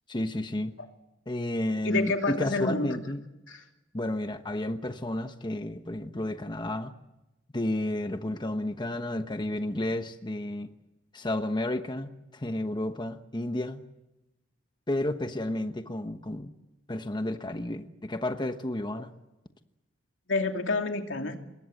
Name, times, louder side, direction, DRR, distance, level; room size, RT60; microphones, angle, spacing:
voice 1, 0.1-0.7 1.3-3.2 3.9-6.9 7.5-10.7 11.1-13.8 14.9-16.5 16.9-19.1, left 1 dB, 25° left, 7 dB, 1.1 m, -31 dB
voice 2, 1.8-3.0 3.5-3.6 19.0-19.1 20.3-21.4, left 3 dB, 80° left, 4 dB, 2.8 m, -29 dB
25.5 x 21.5 x 7.8 m, 0.98 s
head